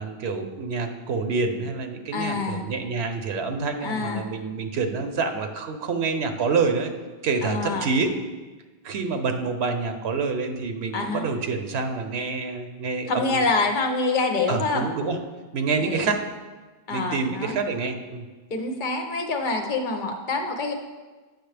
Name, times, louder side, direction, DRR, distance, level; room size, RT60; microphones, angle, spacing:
voice 1, 0.0-6.9 7.2-8.1 8.8-13.4 14.5-15.2 15.5-16.2 16.9-18.2, right 4 dB, 90° right, 6 dB, 1.0 m, -27 dB
voice 2, 2.1-2.6 3.8-4.3 7.4-7.9 10.9-11.2 13.1-14.8 15.8-16.1 16.9-17.6 18.5-20.7, left 3 dB, 55° left, 4 dB, 0.9 m, -26 dB
8.2 x 6.0 x 3.3 m, 1.3 s
omnidirectional pair, 1.0 m